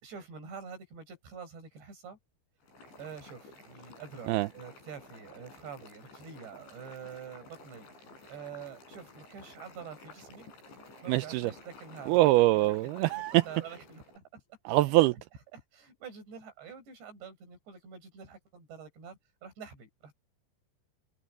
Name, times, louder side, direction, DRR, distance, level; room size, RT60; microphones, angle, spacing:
voice 1, 0.0-2.2 3.0-10.5 11.0-12.2 12.6-14.8 15.5-20.1, right 6 dB, 70° right, 9.7 m, -47 dB
Boiling, 2.6-14.2, left 2 dB, 85° left, 10.0 m, -53 dB
voice 2, 11.1-11.5 12.1-13.4 14.7-15.2, right 18 dB, 85° right, 2.2 m, -24 dB
omnidirectional pair, 5.1 m